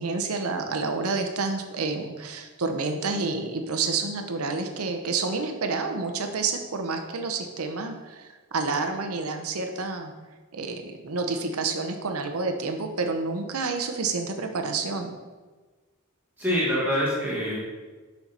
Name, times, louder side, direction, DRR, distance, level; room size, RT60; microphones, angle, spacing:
voice 1, 0.0-10.1 10.5-15.2, right 4 dB, 90° right, 5 dB, 0.8 m, -29 dB
voice 2, 16.4-17.6, equal, 10° right, -6 dB, 1.1 m, -25 dB
7.2 x 5.7 x 3.9 m, 1.3 s
head